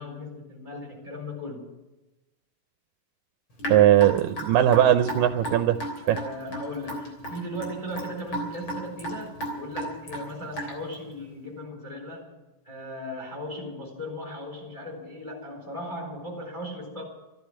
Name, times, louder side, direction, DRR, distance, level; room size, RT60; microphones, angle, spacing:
voice 1, 0.0-1.8 6.0-12.3 12.6-17.0, equal, 5° left, 1 dB, 3.6 m, -37 dB
Raindrop / Drip, 3.6-10.9, right 1 dB, 35° left, 4.0 m, -34 dB
voice 2, 3.7-5.8 6.1-6.2, right 12 dB, 85° right, 8 dB, 2.3 m, -19 dB
14.0 x 11.0 x 8.9 m, 1.0 s
omnidirectional pair, 3.8 m